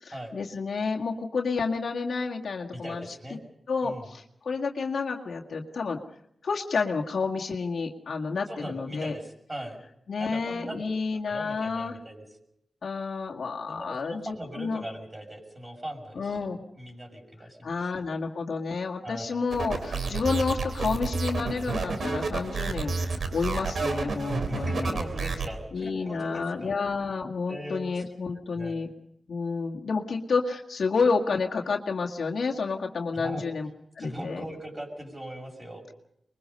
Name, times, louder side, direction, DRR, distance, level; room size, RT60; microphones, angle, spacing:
voice 1, 0.0-3.1 3.7-6.0 6.4-9.1 10.1-12.0 12.8-14.8 16.2-16.6 17.6-25.0 25.7-28.9 29.3-33.7 34.0-34.4, left 4 dB, 75° left, 1 dB, 2.0 m, -30 dB
voice 2, 2.7-3.4 3.8-4.1 8.5-9.8 10.2-10.8 11.3-12.2 13.7-16.5 16.8-17.7 19.0-19.4 24.5-26.7 27.5-28.1 28.5-28.8 33.1-33.4 34.0-35.9, equal, 20° right, 3 dB, 6.6 m, -39 dB
sound 1, 19.5-25.5, right 4 dB, 70° right, 3.1 m, -30 dB
24.5 x 22.5 x 5.5 m, 0.77 s
wide cardioid pair, 80°, 0 cm